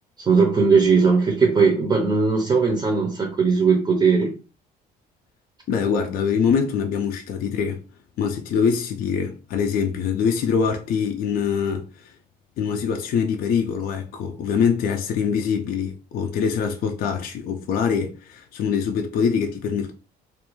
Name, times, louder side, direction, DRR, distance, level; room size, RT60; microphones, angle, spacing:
voice 1, 0.2-4.3, right 5 dB, 25° right, 0.5 m, -18 dB
voice 2, 5.7-7.8 8.2-12.1 12.6-19.9, left 6 dB, 60° left, 0.4 m, -24 dB
2.4 x 2.3 x 2.9 m
cardioid pair, 110°, 17 cm